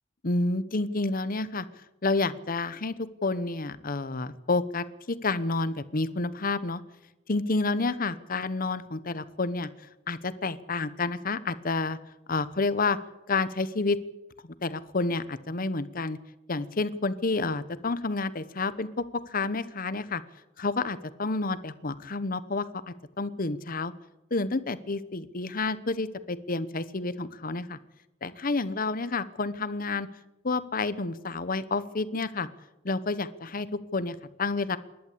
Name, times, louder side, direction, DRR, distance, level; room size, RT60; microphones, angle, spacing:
voice 1, 0.2-1.7 2.0-2.9 3.2-6.8 7.3-9.7 10.1-12.0 12.3-13.0 13.3-14.0 14.4-16.2 16.5-18.9 19.3-20.2 20.6-23.9 24.3-27.8 28.2-30.1 30.4-32.5 32.8-34.8, left 3 dB, 50° left, 15 dB, 1.0 m, -29 dB
27.5 x 12.0 x 8.6 m, 0.98 s
head